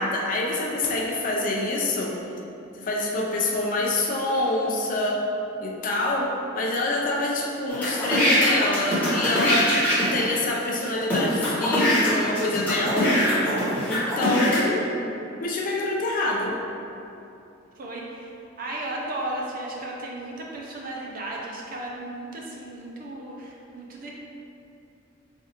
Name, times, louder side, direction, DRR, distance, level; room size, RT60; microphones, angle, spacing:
voice 1, 0.0-2.1 2.8-5.2 5.6-9.7 10.1-13.2 13.9-14.9 15.4-16.6, left 2 dB, 40° left, -2 dB, 0.4 m, -26 dB
sound 1, 7.7-10.3 10.8-10.9 11.1-14.6, left 1 dB, 5° left, 0.8 m, -22 dB
voice 2, 17.8-24.1, right 1 dB, 45° right, -2 dB, 0.5 m, -35 dB
4.2 x 2.4 x 2.7 m, 2.8 s
head